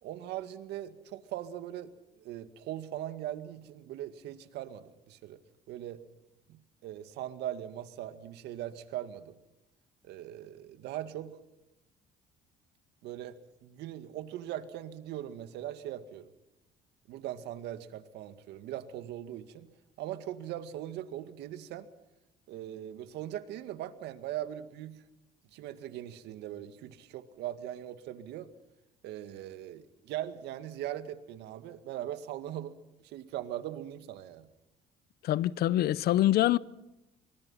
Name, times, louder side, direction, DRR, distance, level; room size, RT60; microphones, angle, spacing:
voice 1, 0.0-5.4 5.7-6.0 6.5-9.4 10.0-11.4 13.0-16.3 17.1-19.7 20.0-21.9 22.5-25.0 25.5-28.5 29.0-34.5, right 12 dB, 85° right, 2.1 m, -40 dB
voice 2, 35.2-36.6, left 14 dB, 70° left, 0.8 m, -25 dB
26.0 x 24.5 x 5.7 m
cardioid pair, 110°, 17 cm